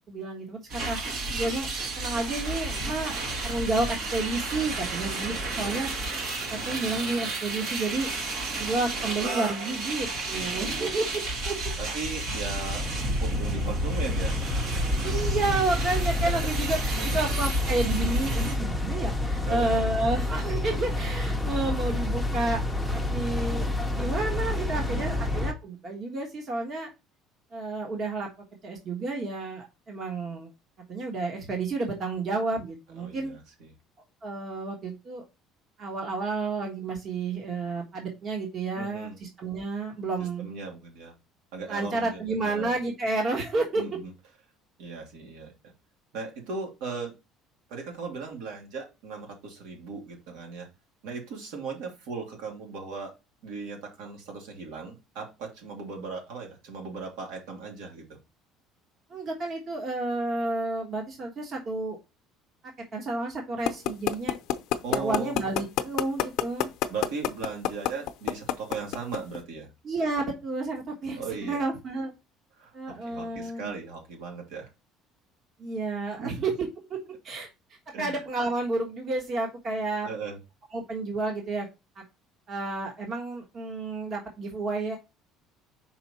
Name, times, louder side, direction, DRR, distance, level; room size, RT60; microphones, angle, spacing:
voice 1, 0.1-1.0 1.3-1.7 1.9-3.2 3.4-6.2 6.5-8.1 8.6-11.6 14.9-22.6 22.9-26.9 27.5-28.3 28.6-30.5 30.9-33.3 34.2-35.2 35.8-40.5 41.7-44.0 59.1-62.0 62.9-64.3 64.9-66.7 69.8-72.1 72.7-73.7 75.6-77.5 78.0-80.1 80.7-81.7 82.5-85.0, right 3 dB, 35° right, 2 dB, 1.5 m, -31 dB
sound 1, 0.7-18.6, right 1 dB, 55° right, 1.9 m, -31 dB
voice 2, 5.1-5.5 10.3-11.2 11.8-12.8 13.2-14.5 15.0-15.1 16.3-16.5 16.9-17.2 19.5-19.8 24.7-25.2 33.0-33.7 38.7-39.2 40.2-41.1 41.5-42.7 43.7-44.1 44.8-45.5 46.1-47.1 47.7-50.7 51.0-53.1 53.4-58.1 64.8-65.3 66.9-69.7 71.2-71.7 72.6-72.7 73.0-74.7 76.2-76.3 77.9-78.2 80.0-80.4, right 4 dB, 80° right, 2 dB, 2.7 m, -38 dB
sound 2, 12.3-25.5, left 2 dB, ahead, 0.8 m, -29 dB
sound 3, 63.7-69.4, left 13 dB, 60° left, 0.7 m, -25 dB
5.8 x 4.6 x 4.3 m, 0.26 s
cardioid pair, 150°, 0 cm